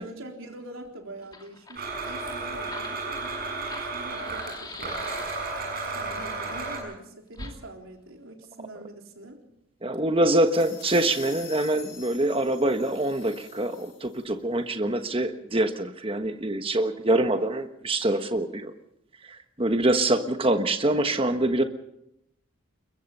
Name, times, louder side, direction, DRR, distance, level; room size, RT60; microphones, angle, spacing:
voice 1, 0.0-5.1 5.9-9.4, right 1 dB, 75° right, 2 dB, 3.8 m, -44 dB
Fire, 0.8-0.9 1.2-5.7 7.3-7.6, left 2 dB, 20° left, 2.5 m, -44 dB
Domestic sounds home sounds, 1.7-6.8, right 3 dB, 45° right, 6.7 m, -33 dB
voice 2, 9.8-18.7 19.2-21.6, right 1 dB, 25° right, 7 dB, 1.3 m, -25 dB
sound 1, 10.2-14.2, left 8 dB, 65° left, 6.8 m, -46 dB
22.0 x 22.0 x 5.6 m, 0.81 s
head